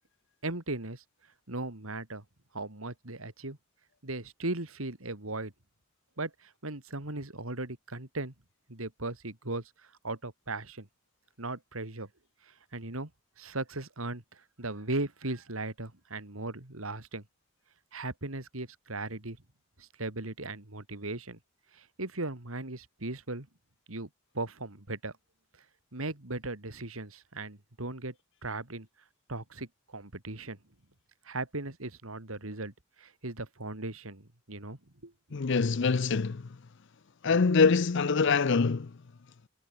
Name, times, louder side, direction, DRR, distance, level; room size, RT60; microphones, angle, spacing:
voice 1, 0.4-1.0 1.5-2.2 2.5-3.6 4.0-5.5 6.2-8.3 8.7-9.7 10.0-10.9 11.4-12.1 12.5-13.1 13.4-17.2 17.9-19.4 19.8-21.4 21.7-23.5 23.9-24.1 24.3-25.1 25.9-28.1 28.4-28.9 29.3-30.6 31.2-32.7 33.0-35.1, right 2 dB, 80° right, 3.0 m, -37 dB
voice 2, 35.3-36.5 37.2-38.9, left 4 dB, 60° left, 0.6 m, -24 dB
head